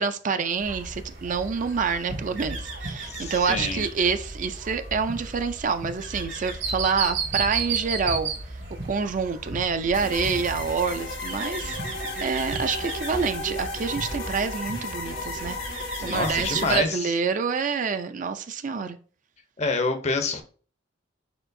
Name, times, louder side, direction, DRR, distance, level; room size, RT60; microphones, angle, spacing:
voice 1, 0.0-8.3 8.8-19.0, right 5 dB, 45° right, 0.4 m, -27 dB
sound 1, 0.6-16.9, right 3 dB, 90° right, 1.5 m, -34 dB
voice 2, 3.1-3.8 15.9-17.1 19.6-20.4, left 3 dB, 40° left, 0.6 m, -27 dB
sound 2, 9.9-16.8, left 2 dB, 75° left, 1.5 m, -34 dB
4.6 x 4.3 x 2.6 m
head